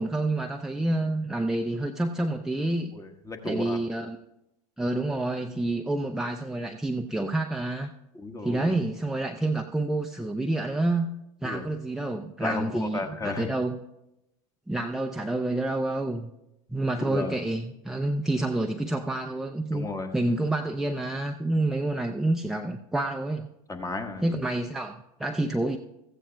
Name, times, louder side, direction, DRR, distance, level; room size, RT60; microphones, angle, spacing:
voice 1, 0.0-2.9 3.4-4.2 4.8-7.9 8.4-11.1 11.4-13.7 14.7-16.3 16.7-23.5 24.2-25.8, right 2 dB, 5° right, 3 dB, 0.6 m, -28 dB
voice 2, 2.9-3.8 8.1-8.7 11.4-11.6 12.4-13.5 17.1-17.3 19.7-20.1 23.7-24.2, left 3 dB, 20° left, 4 dB, 1.4 m, -33 dB
16.5 x 14.0 x 2.3 m, 0.87 s
hypercardioid pair, 95°, 18 cm